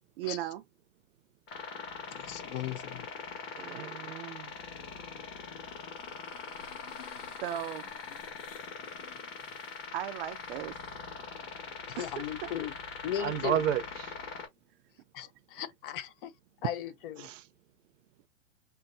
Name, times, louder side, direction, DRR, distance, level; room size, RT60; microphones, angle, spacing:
voice 1, 0.2-0.6 7.4-7.9 9.9-10.8 12.0-12.5, right 13 dB, 50° right, 0.4 m, -36 dB
sound 1, 1.5-14.5, left 5 dB, 30° left, 1.4 m, -42 dB
voice 2, 2.1-3.1 11.9-12.7 13.0-13.6 15.1-16.3 16.6-17.3, left 11 dB, 45° left, 0.6 m, -37 dB
voice 3, 3.6-4.5 13.2-14.1 17.2-17.4, right 10 dB, 85° right, 0.8 m, -32 dB
sound 2, 5.5-11.2, left 9 dB, 85° left, 1.1 m, -55 dB
5.7 x 2.6 x 2.6 m
supercardioid pair, 155°, 37 cm